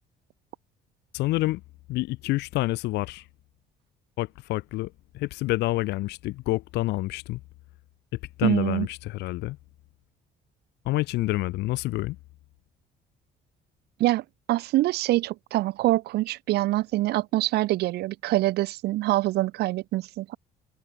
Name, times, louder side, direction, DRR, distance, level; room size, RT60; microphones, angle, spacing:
voice 1, 1.1-1.6 1.9-3.2 4.2-7.4 8.4-9.6 10.8-12.2, left 19 dB, 85° left, 1.6 m, -28 dB
voice 2, 8.4-8.9 14.0-20.4, right 17 dB, 75° right, 0.7 m, -25 dB
cardioid pair, 110°, 17 cm